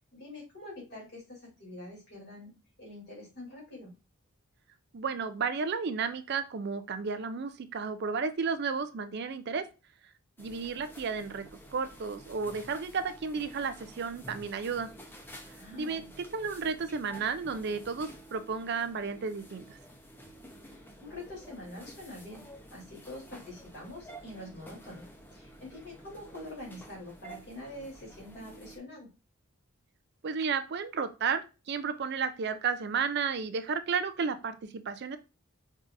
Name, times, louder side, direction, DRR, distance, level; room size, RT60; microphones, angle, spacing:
voice 1, 0.1-2.5 2.8-3.9 15.6-16.1 20.7-22.4 22.7-25.0 25.3-29.1, left 1 dB, 50° left, -3 dB, 2.7 m, -45 dB
voice 2, 4.9-9.7 10.4-11.4 11.7-14.9 15.7-19.8 30.2-35.2, right 5 dB, 50° right, 11 dB, 0.4 m, -33 dB
sound 1, 10.4-28.8, right 1 dB, 10° left, 0.6 m, -51 dB
5.3 x 3.6 x 2.5 m, 0.30 s
head